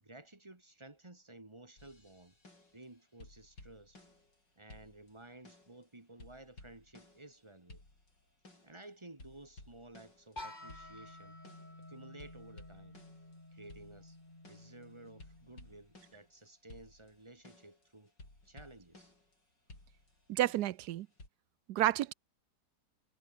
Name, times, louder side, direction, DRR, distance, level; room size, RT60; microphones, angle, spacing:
voice 1, 0.0-2.4 2.7-4.0 4.6-7.8 8.6-11.4 11.9-13.0 13.5-14.2 14.5-18.1 18.5-19.1, right 2 dB, 15° right, 1.7 m, -54 dB
sound 1, 1.8-2.9 3.2-4.4 4.7-5.8 6.2-7.4 7.7-8.8 9.2-11.8 12.2-16.4 16.7-19.3 19.7-21.3, left 2 dB, 80° left, 8.7 m, -57 dB
sound 2, 10.4-16.2, left 1 dB, 25° left, 4.8 m, -52 dB
voice 2, 20.3-21.1 21.7-22.1, right 14 dB, 70° right, 1.1 m, -30 dB
omnidirectional pair, 1.9 m